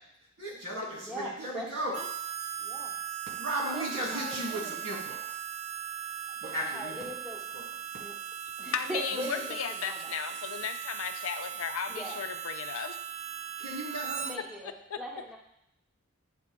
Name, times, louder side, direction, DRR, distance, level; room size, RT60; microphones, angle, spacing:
voice 1, 0.4-1.9 3.4-5.2 6.4-7.1 7.5-7.6 13.6-14.4, right 1 dB, 70° right, -5 dB, 2.6 m, -35 dB
voice 2, 1.0-2.1 2.6-2.9 3.7-4.8 6.4-7.4 8.0-8.1 8.6-10.2 11.9-12.2 14.3-15.4, equal, 5° right, -2 dB, 0.6 m, -41 dB
Harmonica, 1.9-14.4, right 9 dB, 30° right, 0.3 m, -39 dB
voice 3, 8.7-13.0 14.9-15.0, left 7 dB, 75° left, 8 dB, 0.5 m, -35 dB
8.8 x 3.7 x 3.6 m, 0.76 s
head